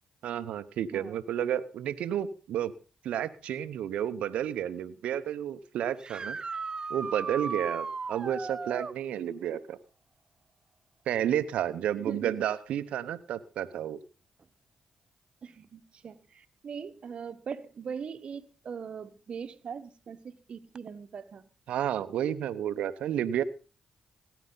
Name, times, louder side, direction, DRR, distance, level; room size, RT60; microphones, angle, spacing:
voice 1, 0.2-2.7 3.0-6.4 6.9-9.8 11.1-14.0 21.7-23.4, right 10 dB, 75° right, 0.8 m, -31 dB
sound 1, 6.0-9.0 12.3-12.4 14.4-14.5 20.7-20.8, right 4 dB, 40° right, 0.6 m, -36 dB
voice 2, 12.0-12.5 15.4-21.4, right 6 dB, 60° right, 1.1 m, -41 dB
18.0 x 10.0 x 3.9 m
hypercardioid pair, 40°, 2 cm